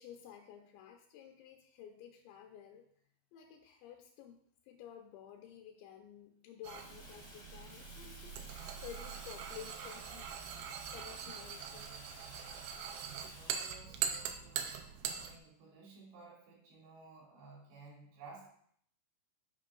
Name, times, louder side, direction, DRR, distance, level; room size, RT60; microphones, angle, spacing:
voice 1, 0.0-2.9 3.3-10.3 10.9-12.0 13.9-14.0, left 9 dB, 80° left, 3 dB, 2.8 m, -53 dB
sound 1, 6.6-15.4, right 8 dB, 90° right, 2.4 m, -42 dB
Fire, 6.7-13.7, left 1 dB, 65° left, 0.4 m, -54 dB
voice 2, 13.1-14.8 15.1-18.5, right 4 dB, 75° right, -4 dB, 5.1 m, -56 dB
9.9 x 5.3 x 3.8 m, 0.65 s
omnidirectional pair, 5.4 m